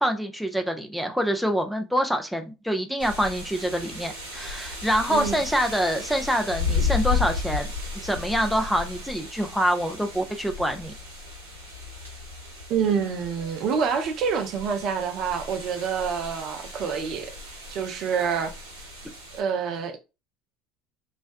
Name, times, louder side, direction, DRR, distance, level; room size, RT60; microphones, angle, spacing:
voice 1, 0.0-7.7 8.0-10.9, equal, ahead, 0.5 m, -26 dB
sound 1, 3.0-19.4, left 4 dB, 90° right, 0.8 m, -34 dB
voice 2, 5.1-5.4 12.7-17.3 17.7-18.5 19.3-20.0, right 6 dB, 55° right, 0.5 m, -27 dB
2.3 x 2.1 x 2.5 m
hypercardioid pair, 70°, 0 cm